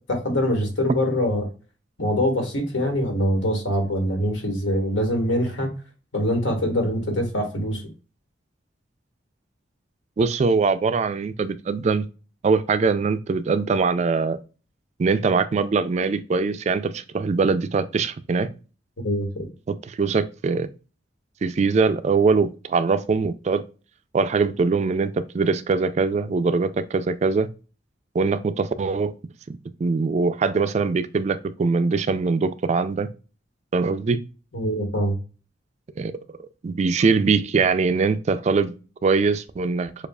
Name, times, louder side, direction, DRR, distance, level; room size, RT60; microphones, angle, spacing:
voice 1, 0.1-1.5 2.0-5.7 6.1-7.8 19.0-19.5 34.5-35.2, equal, 85° left, 1.7 m, -24 dB
voice 2, 10.2-12.1 12.4-14.4 15.0-18.5 19.7-20.7 21.4-23.7 24.1-27.5 28.1-29.1 29.5-33.1 33.7-34.2 36.0-36.1 36.6-38.7 39.0-39.9, right 4 dB, 35° right, 0.3 m, -22 dB
6.9 x 2.4 x 2.3 m
head